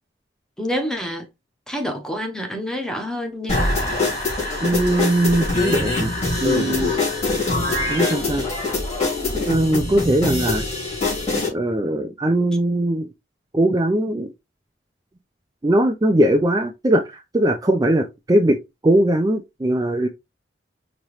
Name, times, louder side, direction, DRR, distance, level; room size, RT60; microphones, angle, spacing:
voice 1, 0.6-1.3 1.7-3.7, equal, 5° left, 0.9 m, -27 dB
sound 1, 3.5-11.5, left 3 dB, 40° left, 3.2 m, -23 dB
voice 2, 4.6-6.1 6.4-6.9 7.9-8.5 9.5-10.7 11.5-13.1 13.5-14.3 15.6-18.6 18.8-20.1, right 1 dB, 20° right, 0.4 m, -20 dB
5.4 x 3.0 x 3.1 m
head